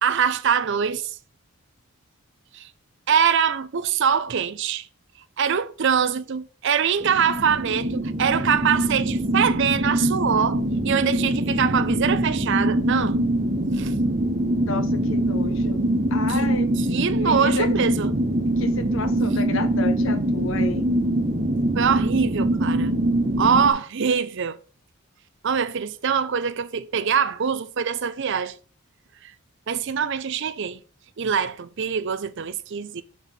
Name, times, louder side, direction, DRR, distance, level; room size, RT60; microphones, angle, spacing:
voice 1, 0.0-1.2 2.5-2.7 3.1-4.9 5.4-13.2 13.7-13.9 16.3-16.4 16.8-18.1 21.7-22.9 23.4-24.6 25.4-28.6 29.2-29.3 29.7-30.8 31.2-33.0, right 7 dB, 55° right, 0.5 m, -23 dB
sound 1, 7.0-23.7, right 1 dB, 35° right, 0.9 m, -23 dB
voice 2, 14.6-15.8 16.1-16.7 17.2-17.7 18.6-20.9, left 3 dB, 60° left, 0.8 m, -31 dB
5.7 x 4.6 x 5.2 m
head